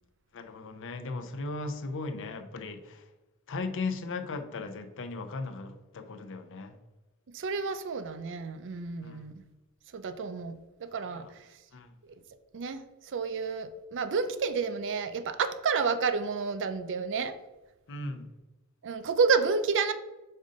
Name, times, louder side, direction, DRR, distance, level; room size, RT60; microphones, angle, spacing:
voice 1, 0.3-3.1 3.5-6.8 9.0-9.2 11.0-11.3 11.7-11.9 17.9-18.3, left 3 dB, 60° left, 0.6 m, -37 dB
voice 2, 7.3-9.4 9.9-10.6 10.8-11.5 12.5-17.4 18.8-19.9, right 5 dB, 55° right, 0.5 m, -30 dB
5.4 x 3.8 x 5.1 m
head